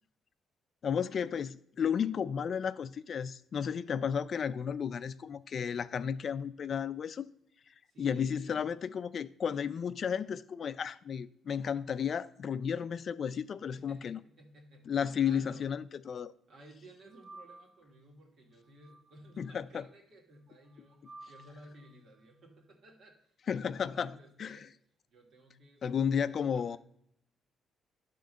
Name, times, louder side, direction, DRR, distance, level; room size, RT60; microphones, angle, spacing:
voice 1, 0.8-7.3 7.7-14.2 14.9-16.3 19.4-19.8 23.5-24.7 25.8-26.8, left 7 dB, 55° left, 0.4 m, -33 dB
voice 2, 7.9-8.6 13.7-15.7 16.5-24.7 25.1-26.8, right 1 dB, 60° right, 2.1 m, -56 dB
sound 1, 17.1-17.9 18.6-19.5 20.5-22.0, right 2 dB, 40° right, 1.9 m, -54 dB
10.5 x 3.8 x 6.3 m
cardioid pair, 90°, 0 cm